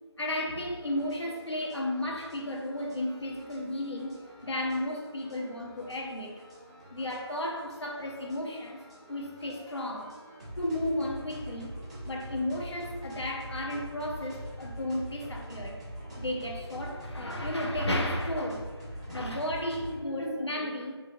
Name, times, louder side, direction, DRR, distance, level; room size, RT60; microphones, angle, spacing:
voice 1, 0.2-6.4 6.9-8.8 9.1-10.2 10.5-11.7 12.1-15.8 16.2-18.7 19.0-21.0, left 1 dB, 70° left, 1 dB, 0.9 m, -33 dB
sound 1, 0.8-20.0, equal, 15° right, 0.6 m, -44 dB
4.2 x 2.9 x 2.6 m, 1.4 s
figure-of-eight pair, 165°, 15 cm